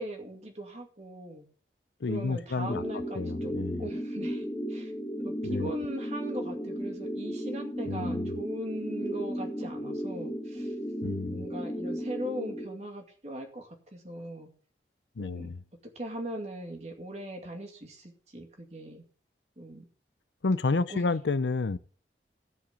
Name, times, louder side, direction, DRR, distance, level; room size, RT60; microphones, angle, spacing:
voice 1, 0.0-1.5 2.1-3.5 3.8-4.9 5.2-10.7 11.3-14.5 15.2-15.5 15.9-19.0 19.6-19.9 20.7-21.2, right 1 dB, 40° right, 2.3 m, -39 dB
voice 2, 2.0-2.8 3.2-3.9 5.4-5.7 7.9-8.3 11.0-11.5 15.2-15.6 20.4-21.8, left 3 dB, 85° left, 0.6 m, -30 dB
sound 1, 2.7-12.7, equal, 10° left, 1.9 m, -35 dB
14.5 x 5.0 x 7.1 m
head